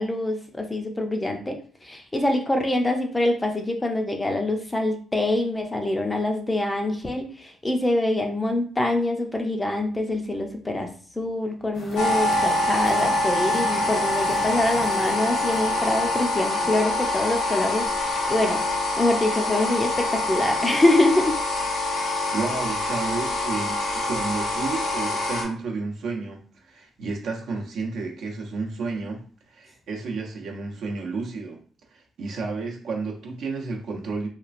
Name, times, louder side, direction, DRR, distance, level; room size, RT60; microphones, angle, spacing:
voice 1, 0.0-1.6 1.8-10.9 11.2-18.6 19.0-21.3, left 1 dB, 15° left, 3 dB, 0.5 m, -25 dB
sound 1, 11.7-16.7, left 1 dB, 55° left, 0.9 m, -41 dB
sound 2, 12.0-25.4, left 2 dB, 85° left, 0.7 m, -25 dB
voice 2, 22.3-31.6 31.9-34.3, right 4 dB, 70° right, 0 dB, 0.7 m, -31 dB
2.9 x 2.3 x 2.4 m, 0.44 s
cardioid pair, 90°, 0 cm